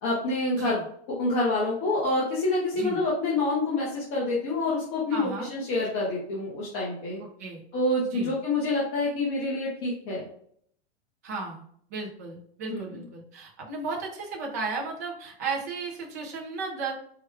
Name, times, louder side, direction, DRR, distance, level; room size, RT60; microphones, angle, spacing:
voice 1, 0.0-0.8 1.1-7.2 7.7-10.2 12.7-13.1, left 2 dB, 20° left, -6 dB, 0.7 m, -27 dB
voice 2, 5.1-5.5 7.4-7.6 8.1-8.3 11.2-11.6 11.9-16.9, right 4 dB, 15° right, -1 dB, 0.4 m, -34 dB
4.8 x 2.2 x 4.5 m, 0.64 s
supercardioid pair, 180°, 33 cm